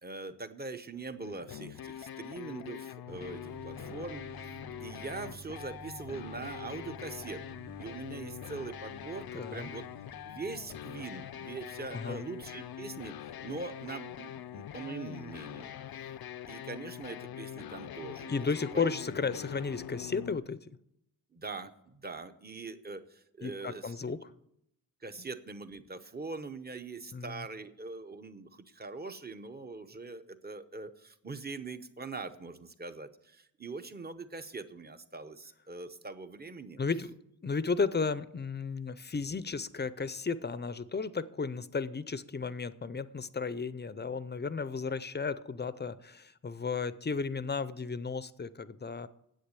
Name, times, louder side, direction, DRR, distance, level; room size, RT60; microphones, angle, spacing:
voice 1, 0.0-4.6 4.8-9.9 10.2-15.7 16.5-18.5 18.7-18.9 21.3-24.0 25.0-36.8 44.9-45.0, right 3 dB, 25° right, 9 dB, 0.8 m, -42 dB
sound 1, 1.2-20.4, left 10 dB, 75° left, 0.5 m, -44 dB
sound 2, 3.1-15.5, right 4 dB, 60° right, 1.9 m, -53 dB
voice 2, 9.3-9.7 11.9-12.2 18.3-20.6 23.4-24.3 27.1-27.4 36.8-37.1 37.4-49.1, left 4 dB, 30° left, 15 dB, 0.5 m, -34 dB
10.0 x 8.3 x 8.1 m, 0.80 s
wide cardioid pair, 140°, 37 cm